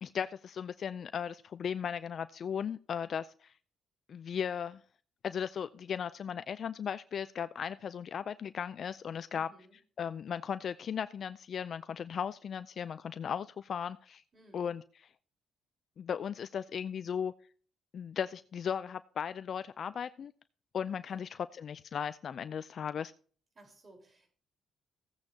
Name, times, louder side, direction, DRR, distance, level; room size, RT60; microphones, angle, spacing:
voice 1, 0.0-3.5 4.1-4.8 5.2-9.5 10.0-14.2 14.5-14.8 16.0-17.3 17.9-20.3 20.7-23.1, left 7 dB, 55° left, 0.4 m, -36 dB
voice 2, 9.3-9.8 14.3-14.7 21.1-21.3 23.5-24.3, right 1 dB, 40° right, 4.3 m, -58 dB
15.5 x 8.8 x 2.8 m
cardioid pair, 90°, 0 cm